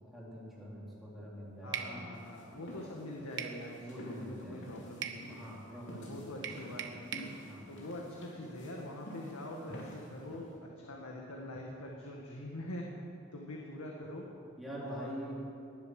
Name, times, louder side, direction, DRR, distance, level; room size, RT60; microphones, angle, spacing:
voice 1, 0.1-2.1 2.3-2.7 3.8-4.8 5.3-6.8 7.4-7.7 14.6-15.4, equal, ahead, -6 dB, 3.5 m, -45 dB
voice 2, 1.6-5.2 6.0-7.0 7.7-12.9 13.3-14.3 14.8-15.3, left 1 dB, 90° left, -1 dB, 1.7 m, -44 dB
sound 1, 1.7-2.0 3.4-3.6 5.0-5.2 6.4-7.3, right 9 dB, 55° right, 1.0 m, -39 dB
sound 2, 2.1-10.6, equal, 55° left, 3.2 m, -50 dB
19.0 x 11.0 x 6.5 m, 2.7 s
head